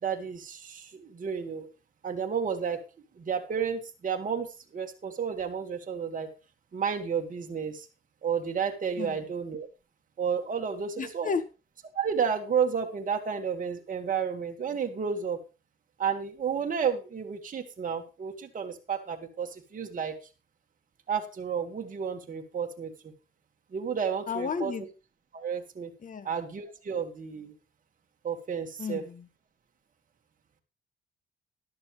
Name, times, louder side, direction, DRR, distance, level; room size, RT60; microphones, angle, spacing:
voice 1, 0.0-1.7 2.0-2.8 3.2-4.5 4.7-6.3 6.7-7.9 8.2-9.7 10.2-11.3 12.0-15.4 16.0-20.2 21.1-22.9 23.7-24.7 25.3-25.9 26.2-27.5 28.2-29.0, right 7 dB, 40° right, 3 dB, 2.1 m, -31 dB
voice 2, 11.0-11.4 24.3-24.8 26.0-26.3 28.8-29.2, left 5 dB, 40° left, 10 dB, 1.8 m, -32 dB
13.0 x 12.0 x 3.4 m, 0.31 s
cardioid pair, 90°, 20 cm